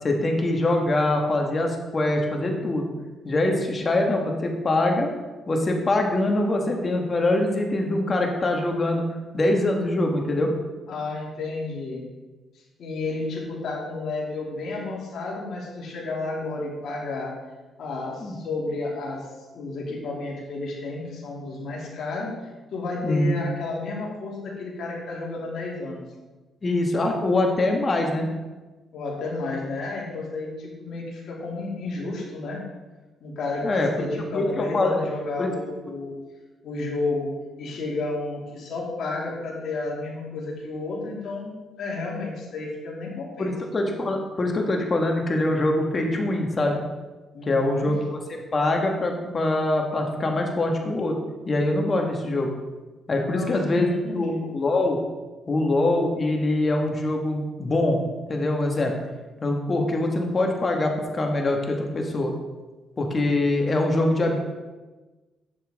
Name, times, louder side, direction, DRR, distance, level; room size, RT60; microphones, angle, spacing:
voice 1, 0.0-2.9 3.2-5.1 5.5-9.1 9.3-10.5 18.2-18.3 23.0-23.5 26.6-28.3 33.6-33.9 34.3-35.0 35.4-35.5 43.4-46.8 47.5-51.2 51.4-52.5 53.1-55.0 55.5-58.0 58.3-58.9 59.4-62.3 63.0-64.4, left 2 dB, 35° left, 2 dB, 1.7 m, -23 dB
voice 2, 10.9-12.1 12.8-17.3 17.8-19.2 19.5-22.3 22.7-26.0 28.9-32.6 33.2-36.2 36.6-37.3 37.6-41.5 41.8-43.5 47.3-47.9 53.3-54.4, left 3 dB, 65° left, -3 dB, 2.6 m, -31 dB
10.0 x 7.2 x 3.7 m, 1.2 s
cardioid pair, 90°, 0 cm